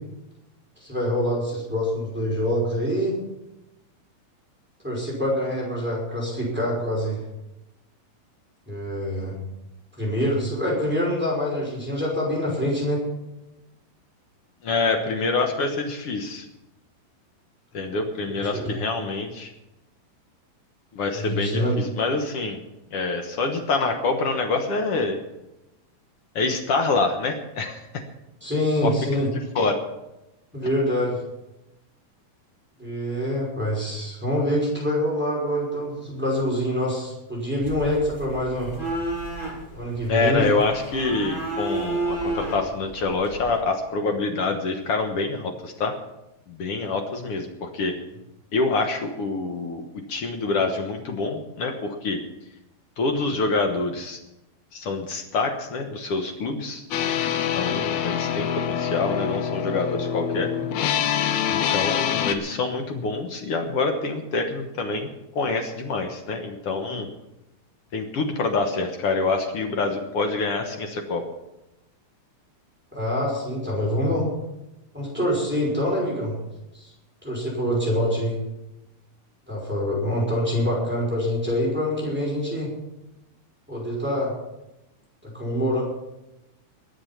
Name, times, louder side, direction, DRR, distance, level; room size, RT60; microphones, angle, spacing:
voice 1, 0.8-3.1 4.8-7.2 8.7-9.3 10.0-13.0 18.4-18.7 21.2-21.8 28.4-29.3 30.5-31.2 32.8-38.7 39.7-40.5 72.9-74.3 74.9-76.3 76.7-76.9 77.2-78.4 79.5-82.7 83.7-84.3 85.2-85.8, equal, 5° right, -3 dB, 5.2 m, -25 dB
voice 2, 14.6-16.5 17.7-19.5 20.9-22.6 22.9-25.2 26.3-28.0 28.8-28.9 29.5-29.8 40.1-45.9 46.5-47.9 48.5-52.2 53.0-54.2 54.7-56.8 57.5-60.5 61.5-67.1 67.9-71.2, left 3 dB, 65° left, 4 dB, 1.4 m, -26 dB
sound 1, 37.6-43.6, right 2 dB, 15° left, 2.5 m, -32 dB
sound 2, 56.9-62.3, left 9 dB, 90° left, 2.9 m, -25 dB
21.5 x 8.4 x 5.8 m, 0.92 s
omnidirectional pair, 4.4 m